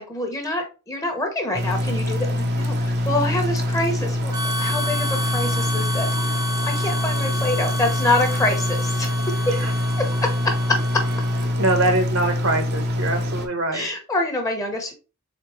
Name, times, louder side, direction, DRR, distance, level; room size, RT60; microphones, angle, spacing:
voice 1, 0.0-6.1 6.6-9.1 10.4-10.8 13.7-14.9, left 2 dB, 15° left, 3 dB, 1.1 m, -26 dB
sound 1, 1.5-13.5, left 1 dB, 50° right, 0.8 m, -24 dB
Harmonica, 4.3-11.6, left 1 dB, 20° right, 0.9 m, -31 dB
voice 2, 11.6-13.9, right 2 dB, 65° right, 6 dB, 1.1 m, -23 dB
4.3 x 3.7 x 3.1 m, 0.32 s
head